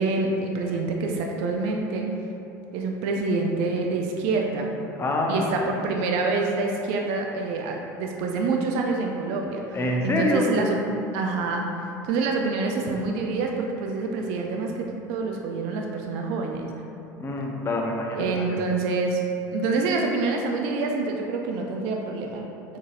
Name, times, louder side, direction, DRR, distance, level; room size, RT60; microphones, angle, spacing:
voice 1, 0.0-2.1 2.7-4.7 5.3-9.8 10.0-10.8 11.1-11.6 12.0-16.7 18.2-19.2 19.5-22.4, right 3 dB, 70° right, 1 dB, 0.4 m, -26 dB
voice 2, 5.0-5.5 9.7-10.5 17.2-18.6, left 1 dB, 25° left, 0 dB, 0.5 m, -26 dB
3.8 x 2.7 x 2.4 m, 2.7 s
hypercardioid pair, 85°, 10 cm